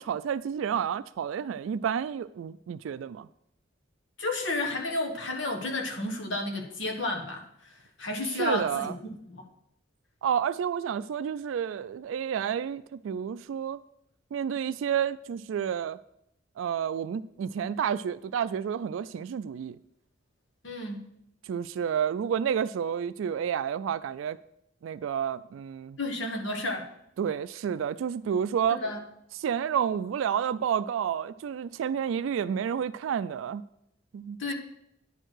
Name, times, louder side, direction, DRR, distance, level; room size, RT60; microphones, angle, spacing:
voice 1, 0.0-3.3 8.4-8.9 10.2-13.8 14.3-16.0 16.6-19.8 21.5-24.4 24.8-26.0 27.2-28.8 29.4-33.6 34.1-34.5, right 8 dB, 85° right, 0.3 m, -30 dB
voice 2, 4.2-9.4 20.6-21.0 26.0-26.9 28.7-29.0 34.4-34.5, left 2 dB, 75° left, 1.4 m, -32 dB
9.8 x 4.6 x 6.2 m
head